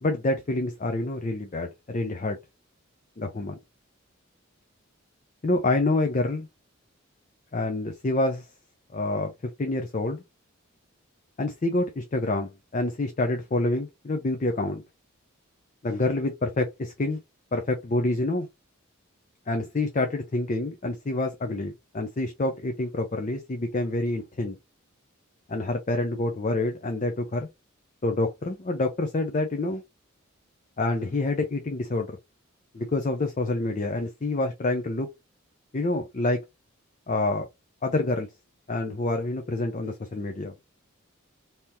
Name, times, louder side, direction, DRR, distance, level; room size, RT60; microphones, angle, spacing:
voice 1, 0.0-2.4 3.2-3.6 5.4-6.5 7.5-8.5 8.9-9.3 9.6-10.2 11.4-14.8 15.8-17.2 17.5-18.5 19.5-24.6 25.5-27.5 28.0-29.8 30.8-32.2 32.7-35.1 35.7-36.4 37.1-37.5 37.8-38.3 38.7-40.5, left 2 dB, 35° left, 0.5 m, -27 dB
3.4 x 2.8 x 2.8 m
head